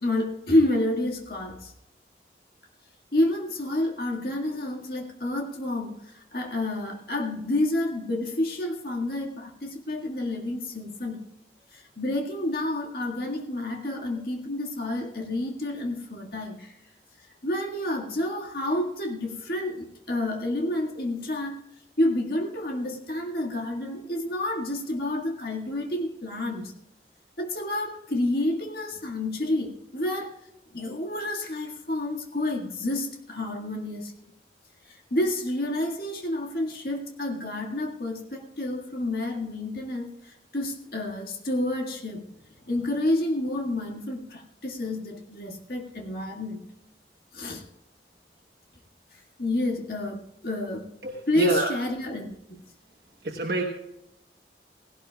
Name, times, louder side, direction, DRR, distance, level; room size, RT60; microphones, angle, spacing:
voice 1, 0.0-1.7 3.1-11.3 11.7-16.8 17.4-21.6 22.0-26.7 27.4-30.3 30.7-34.1 34.9-42.3 42.7-46.7 47.3-47.6 49.4-50.9 51.3-52.6, left 1 dB, 55° left, 1 dB, 1.9 m, -29 dB
voice 2, 51.0-51.7 53.2-53.6, right 2 dB, 60° right, 1 dB, 1.2 m, -27 dB
17.0 x 17.0 x 2.4 m, 0.84 s
head